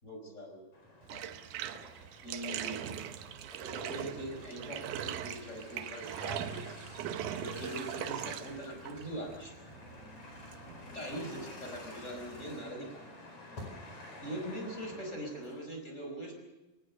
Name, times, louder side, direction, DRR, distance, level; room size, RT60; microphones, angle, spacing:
voice 1, 0.0-0.7 1.1-1.3 2.2-2.8 3.6-6.5 6.8-7.0 7.4-9.5 10.9-13.1 14.2-16.3, right 1 dB, 15° left, 3 dB, 5.0 m, -42 dB
sound 1, 0.7-15.6, left 2 dB, 45° left, 5.7 m, -50 dB
Bathtub (filling or washing), 1.0-12.7, right 10 dB, 75° right, 1.9 m, -41 dB
22.5 x 19.0 x 6.8 m, 1.0 s
omnidirectional pair, 4.7 m